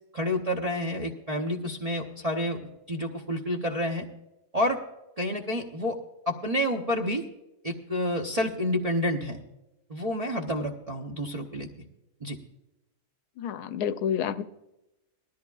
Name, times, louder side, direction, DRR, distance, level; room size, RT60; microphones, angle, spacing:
voice 1, 0.1-4.1 4.5-4.8 5.2-6.0 6.3-7.3 7.6-9.4 9.9-11.7 12.2-12.4, left 1 dB, 35° right, -2 dB, 0.6 m, -29 dB
voice 2, 13.4-14.4, left 8 dB, 80° left, 12 dB, 1.1 m, -29 dB
19.5 x 13.5 x 2.3 m, 0.94 s
omnidirectional pair, 1.7 m